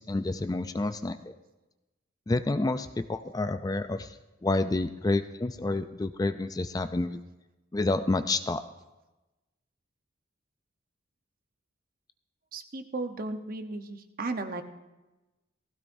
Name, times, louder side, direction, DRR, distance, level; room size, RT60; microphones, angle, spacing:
voice 1, 0.0-1.3 2.3-4.2 4.4-7.2 7.7-8.6, left 2 dB, 20° left, 10 dB, 0.4 m, -29 dB
voice 2, 12.5-14.6, right 2 dB, 50° right, 7 dB, 0.9 m, -35 dB
18.5 x 16.0 x 2.6 m, 1.1 s
head